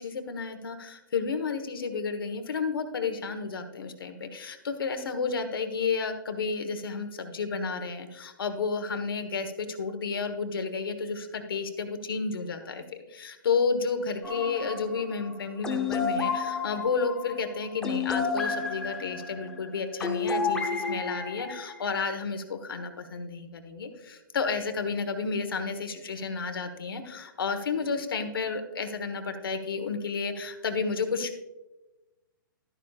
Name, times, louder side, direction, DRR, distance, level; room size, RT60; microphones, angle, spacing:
voice 1, 0.0-12.8 13.1-31.4, left 5 dB, 90° left, 7 dB, 1.3 m, -31 dB
sound 1, 14.2-22.0, left 5 dB, 5° left, 0.8 m, -31 dB
12.5 x 10.0 x 2.4 m, 1.1 s
hypercardioid pair, 160°, 11 cm